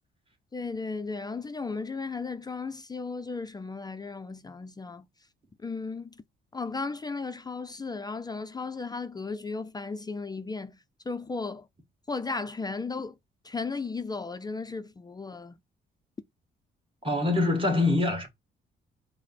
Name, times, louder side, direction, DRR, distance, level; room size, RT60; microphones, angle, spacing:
voice 1, 0.5-5.1 5.6-6.1 6.5-10.8 11.1-11.7 12.1-13.1 13.4-15.6, left 4 dB, 20° left, 0.4 m, -35 dB
voice 2, 17.0-18.3, left 2 dB, 25° right, 1.8 m, -24 dB
4.8 x 2.1 x 4.3 m
cardioid pair, 90°, 20 cm